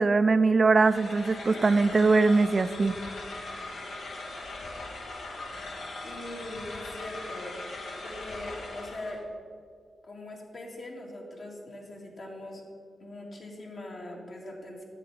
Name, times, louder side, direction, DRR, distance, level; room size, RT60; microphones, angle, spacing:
voice 1, 0.0-3.0, right 3 dB, 45° right, 12 dB, 0.4 m, -22 dB
sound 1, 0.8-9.2, left 2 dB, 80° left, 1.5 m, -40 dB
voice 2, 6.0-7.6 8.0-9.2 10.0-12.6 13.0-14.8, left 1 dB, 60° left, -2 dB, 2.2 m, -41 dB
10.5 x 7.7 x 4.0 m, 2.2 s
cardioid pair, 60°, 0 cm